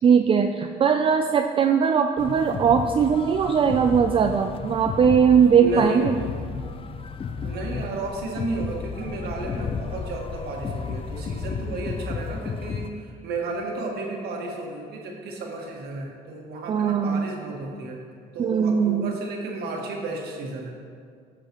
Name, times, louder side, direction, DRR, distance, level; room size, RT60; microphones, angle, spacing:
voice 1, 0.0-6.2 16.7-17.3 18.4-19.1, right 7 dB, 30° right, 5 dB, 0.4 m, -20 dB
sound 1, 2.2-12.9, left 5 dB, 35° left, 0.5 m, -33 dB
voice 2, 5.6-6.1 7.4-18.0 18.3-20.7, right 2 dB, 70° right, 0 dB, 1.6 m, -33 dB
13.0 x 6.8 x 3.0 m, 2.1 s
cardioid pair, 110°, 17 cm